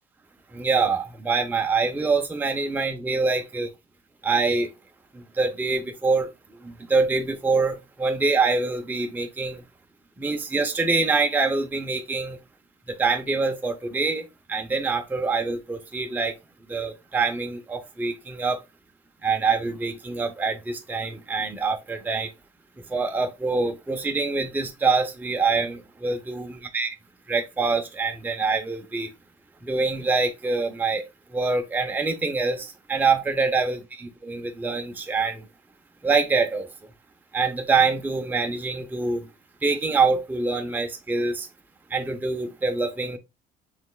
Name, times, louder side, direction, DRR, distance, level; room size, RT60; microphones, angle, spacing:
voice 1, 0.5-3.7 4.2-4.7 5.1-6.3 6.6-9.6 10.2-12.4 12.9-14.2 14.5-16.3 16.7-18.6 19.2-22.3 22.9-26.9 27.3-29.1 29.6-31.0 31.3-35.5 36.0-36.7 37.3-39.3 39.6-41.5 41.9-43.2, right 4 dB, 10° right, 0.6 m, -25 dB
5.5 x 3.3 x 2.2 m
cardioid pair, 100°, 18 cm